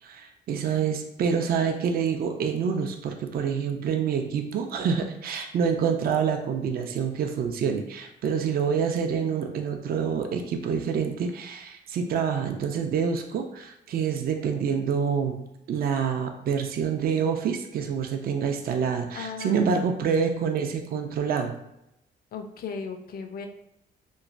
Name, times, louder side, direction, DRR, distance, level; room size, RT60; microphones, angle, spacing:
voice 1, 0.0-21.6, right 6 dB, 50° right, 5 dB, 0.4 m, -27 dB
voice 2, 19.2-19.9 22.3-23.5, left 5 dB, 50° left, 5 dB, 0.4 m, -36 dB
3.0 x 2.2 x 2.5 m, 0.81 s
cardioid pair, 90°, 20 cm